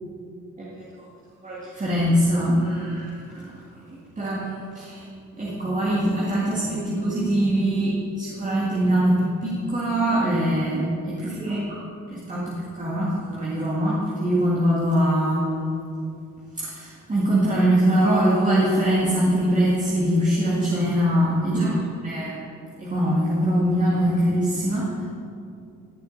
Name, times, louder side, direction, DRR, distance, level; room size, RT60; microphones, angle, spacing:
voice 1, 1.4-3.5 3.9-5.1 5.4-10.9 11.4-11.8 12.1-15.6 16.5-21.7 22.0-22.4 22.8-25.0, right 1 dB, 25° right, -7 dB, 1.9 m, -23 dB
14.5 x 6.7 x 4.0 m, 2.5 s
cardioid pair, 90°, 30 cm